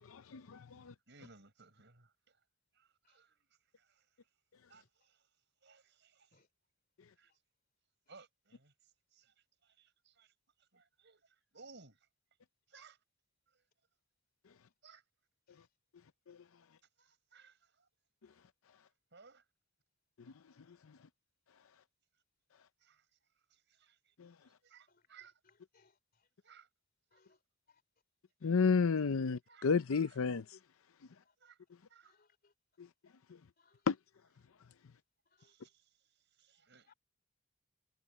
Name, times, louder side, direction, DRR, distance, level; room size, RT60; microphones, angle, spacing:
voice 1, 0.0-0.9 16.3-16.4 20.2-21.0 24.2-24.4 28.4-30.6 32.8-32.9 33.3-33.4 33.9-34.0, left 5 dB, 80° left, 0.6 m, -33 dB
voice 2, 0.7-2.4 2.7-4.3 4.7-6.5 7.1-7.3 8.1-12.1 12.7-13.0 13.5-13.7 14.8-15.1 17.0-17.9 19.1-19.5 22.8-24.2 24.4-25.4 26.4-26.7 27.1-27.2 29.5-30.2 31.4-31.6 31.9-32.2 33.7-33.8 35.4-36.9, right 4 dB, 55° right, 6.1 m, -62 dB
voice 3, 25.7-26.3 27.1-27.4 27.7-27.8 31.1-31.3 32.0-32.5 33.6-33.8 35.3-35.5 36.9-37.0, left 5 dB, 45° left, 3.0 m, -71 dB
head